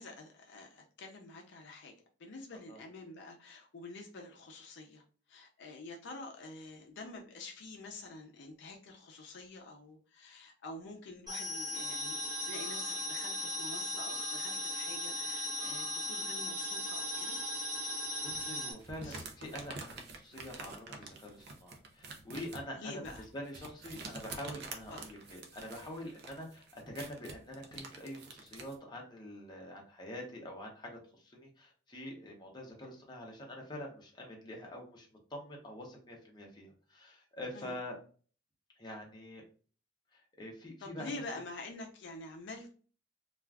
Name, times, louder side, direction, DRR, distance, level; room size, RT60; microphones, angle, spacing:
voice 1, 0.0-1.9 2.2-5.0 5.3-12.2 12.5-17.4 19.0-19.2 22.8-23.2 24.9-25.1 37.5-37.8 40.8-42.7, left 2 dB, 60° left, 1 dB, 0.5 m, -47 dB
sound 1, 11.3-18.7, left 1 dB, 20° right, 0.7 m, -37 dB
voice 2, 17.9-23.0 23.3-38.0 38.8-39.4 40.1-41.4, left 1 dB, 20° left, -1 dB, 0.7 m, -46 dB
sound 2, 18.3-28.8, right 3 dB, 55° right, 0.5 m, -48 dB
2.4 x 2.3 x 3.3 m, 0.41 s
head